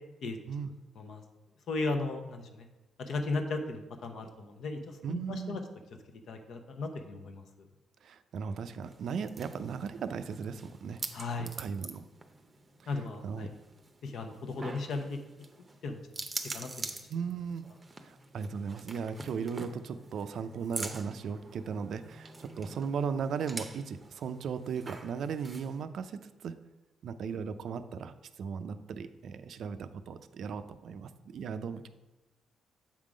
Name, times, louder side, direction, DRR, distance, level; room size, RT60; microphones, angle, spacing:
voice 1, 1.7-2.6 3.0-4.8 5.1-5.6 6.3-7.4 11.1-11.5 12.9-13.5 14.0-15.2 15.8-16.0 16.5-17.0, left 3 dB, 65° left, 5 dB, 0.8 m, -36 dB
voice 2, 5.0-5.6 8.0-11.0 11.4-12.1 12.8-13.5 17.1-17.7 18.0-26.5 27.0-28.1 28.4-31.9, right 6 dB, 65° right, 11 dB, 0.4 m, -37 dB
sound 1, 8.8-25.8, right 3 dB, 25° right, 0.6 m, -45 dB
7.3 x 3.7 x 4.9 m, 1.1 s
cardioid pair, 90°, 0 cm